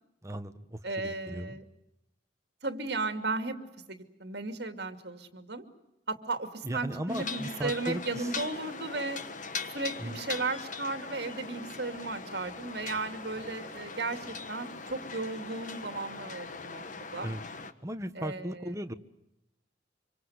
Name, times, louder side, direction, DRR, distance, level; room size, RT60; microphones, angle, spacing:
voice 1, 0.2-1.6 6.6-8.3 10.0-10.2 17.2-17.4 17.8-18.9, right 1 dB, 15° right, 8 dB, 1.3 m, -37 dB
voice 2, 0.8-1.6 2.6-5.6 6.1-9.2 9.7-17.3 18.2-19.0, right 3 dB, 65° right, 8 dB, 2.6 m, -35 dB
sound 1, 7.1-17.7, left 4 dB, 45° left, 1.4 m, -41 dB
26.0 x 25.0 x 8.2 m, 0.86 s
head